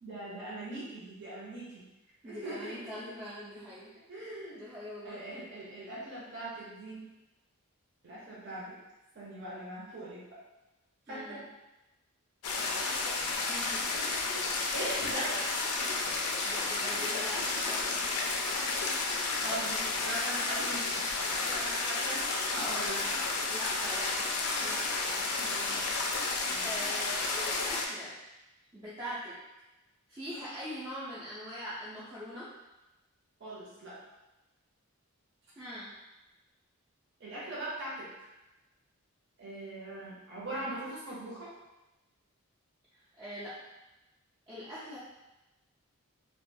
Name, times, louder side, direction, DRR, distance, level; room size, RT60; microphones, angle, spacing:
voice 1, 0.0-1.8 2.2-2.7 4.1-4.6 5.0-7.0 8.0-8.7 9.1-10.2 11.1-11.4 12.8-13.1 14.7-15.4 19.0-22.2 22.5-23.2 25.0-25.7 26.4-26.7 33.4-34.0 37.2-38.3 39.4-41.5, right 1 dB, 50° right, -7 dB, 0.7 m, -40 dB
voice 2, 2.2-3.9 4.5-5.2 11.1-11.4 13.5-13.9 16.4-18.1 23.5-24.1 24.6-24.8 26.1-28.1 28.7-29.3 30.1-32.5 35.6-35.9 43.2-43.5 44.5-45.0, equal, 20° right, -11 dB, 0.4 m, -42 dB
sound 1, 12.4-27.9, left 3 dB, 85° left, 0.4 m, -32 dB
2.4 x 2.2 x 2.6 m, 1.0 s
head